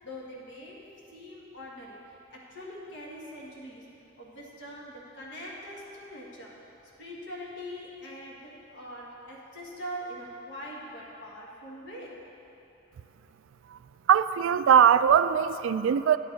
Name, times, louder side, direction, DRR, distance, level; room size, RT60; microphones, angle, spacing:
voice 1, 0.0-2.0 2.3-3.8 4.2-6.6 7.0-12.2, equal, 65° left, -3 dB, 1.6 m, -42 dB
voice 2, 14.1-16.2, right 8 dB, 80° right, 13 dB, 0.3 m, -21 dB
10.0 x 8.7 x 4.0 m, 2.9 s
head